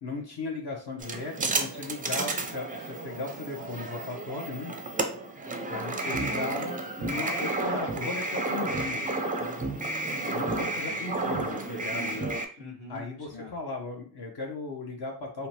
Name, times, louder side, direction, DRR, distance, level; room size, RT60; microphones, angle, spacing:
voice 1, 0.0-4.7 5.7-9.1 10.3-12.3 12.9-15.5, left 3 dB, 50° left, 1 dB, 0.8 m, -37 dB
sound 1, 1.0-12.5, right 2 dB, 20° right, 0.4 m, -31 dB
voice 2, 9.4-11.0 12.6-13.0 13.3-13.5, left 2 dB, 80° left, -5 dB, 1.4 m, -44 dB
2.9 x 2.2 x 2.7 m, 0.43 s
supercardioid pair, 40°, 49 cm